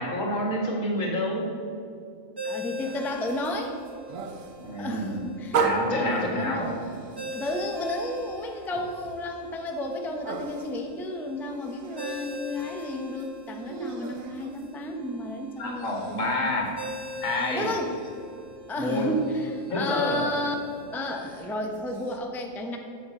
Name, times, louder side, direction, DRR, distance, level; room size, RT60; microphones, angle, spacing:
voice 1, 0.0-1.5 4.6-5.2 5.6-6.7 15.6-16.8 17.2-17.7 18.8-19.1 19.7-20.3, left 1 dB, 70° left, -1 dB, 2.2 m, -28 dB
voice 2, 2.4-3.8 4.8-6.7 7.3-15.9 17.5-17.9 18.7-20.5 20.9-22.8, left 1 dB, ahead, 2 dB, 0.6 m, -32 dB
Ringtone, 2.4-21.5, left 1 dB, 15° right, 1.4 m, -42 dB
sound 1, 2.8-15.3 15.5-22.2, right 5 dB, 75° right, 1.2 m, -37 dB
8.5 x 7.0 x 6.7 m, 2.5 s
omnidirectional pair, 1.4 m